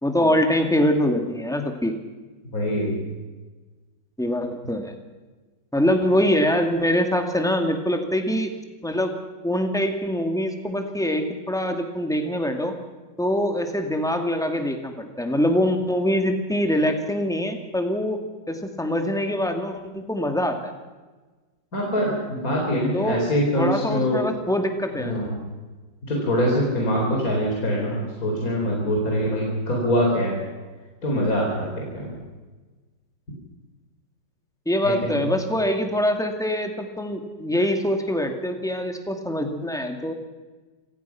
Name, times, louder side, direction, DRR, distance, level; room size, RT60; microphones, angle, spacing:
voice 1, 0.0-2.0 4.2-4.9 5.7-8.5 8.8-9.1 9.4-12.8 13.2-20.6 22.9-23.2 23.5-25.1 34.7-40.1, equal, ahead, 5 dB, 2.2 m, -24 dB
voice 2, 2.5-3.1 21.7-24.2 24.9-25.4 26.1-30.4 31.0-32.2 34.8-35.3, equal, 50° left, -2 dB, 4.6 m, -24 dB
27.0 x 16.5 x 6.0 m, 1.3 s
omnidirectional pair, 1.9 m